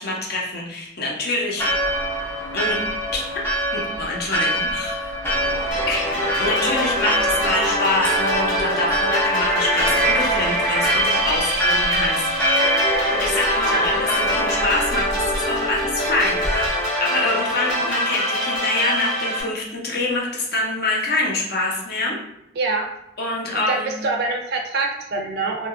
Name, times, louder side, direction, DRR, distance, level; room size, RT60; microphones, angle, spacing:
voice 1, 0.0-1.6 2.5-2.8 3.1-3.2 3.7-5.4 5.9-12.3 13.1-22.2 23.2-23.9, left 2 dB, 50° left, -2 dB, 0.6 m, -25 dB
Church bell, 1.6-16.7, equal, 10° left, 0.4 m, -26 dB
sound 1, 5.7-19.4, equal, 85° left, 1.3 m, -23 dB
voice 2, 22.6-22.9 23.5-25.7, right 3 dB, 55° right, 2 dB, 0.4 m, -25 dB
2.8 x 2.2 x 2.4 m, 0.85 s
head